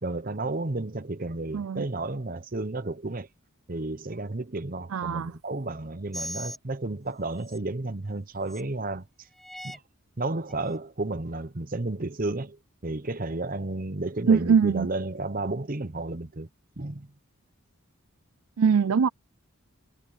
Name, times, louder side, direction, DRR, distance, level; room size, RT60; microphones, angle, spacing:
voice 1, 0.0-3.3 3.7-9.3 9.6-9.8 10.2-16.5 16.8-17.1, right 2 dB, 40° right, 0.9 m, -32 dB
voice 2, 1.5-1.8 4.9-5.3 14.3-14.9 18.6-19.1, right 6 dB, 75° right, 0.4 m, -22 dB
sound 1, 6.1-6.6 7.4-7.6 8.5-8.6 9.4-9.8 10.5-10.6, equal, ahead, 0.5 m, -38 dB
head